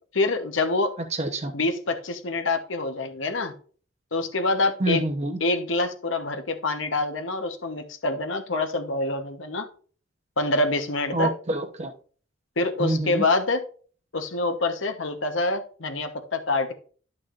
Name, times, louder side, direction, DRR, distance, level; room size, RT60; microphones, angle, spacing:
voice 1, 0.1-0.9 1.5-3.5 4.1-5.1 5.4-9.7 10.4-11.3 12.6-13.6 14.1-16.7, left 2 dB, 70° left, 7 dB, 1.1 m, -26 dB
voice 2, 1.2-1.5 4.8-5.4 11.1-11.9 12.8-13.2, right 2 dB, 35° right, 5 dB, 0.9 m, -26 dB
11.0 x 5.9 x 2.5 m, 0.42 s
head